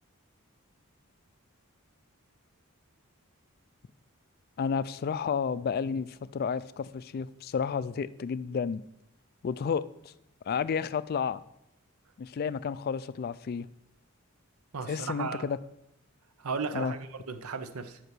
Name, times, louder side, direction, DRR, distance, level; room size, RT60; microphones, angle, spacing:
voice 1, 4.6-8.8 9.4-9.8 10.5-11.4 12.2-13.7 14.9-15.6 16.7-16.9, left 6 dB, 45° left, 0.3 m, -31 dB
voice 2, 14.7-15.5 16.4-18.0, right 4 dB, 85° right, 0.7 m, -35 dB
8.0 x 5.9 x 6.1 m
head